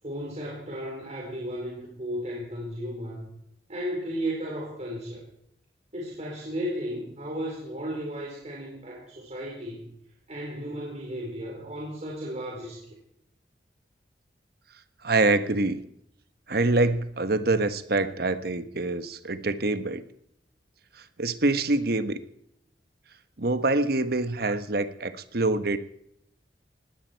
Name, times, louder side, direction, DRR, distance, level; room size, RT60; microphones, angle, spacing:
voice 1, 0.0-3.3 3.7-5.2 5.9-9.9 10.3-12.8, equal, 40° right, -4 dB, 4.4 m, -34 dB
voice 2, 15.0-15.8 16.5-20.0 21.0-22.2 23.4-25.8, right 2 dB, 60° right, 11 dB, 1.2 m, -25 dB
20.0 x 16.0 x 4.6 m, 0.75 s
head